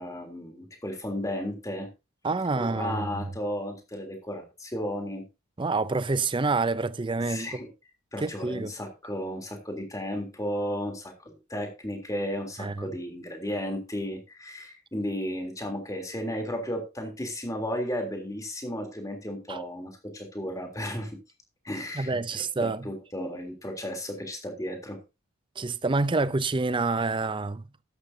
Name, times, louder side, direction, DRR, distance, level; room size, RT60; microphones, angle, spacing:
voice 1, 0.0-1.9 2.6-5.3 7.2-7.7 8.1-21.1 21.6-25.0, equal, 15° left, 3.3 m, -34 dB
voice 2, 2.2-3.3 5.6-7.5 8.2-8.7 12.6-12.9 19.5-19.6 21.9-22.9 25.6-27.6, right 3 dB, 25° right, 0.5 m, -27 dB
13.5 x 12.0 x 2.8 m
head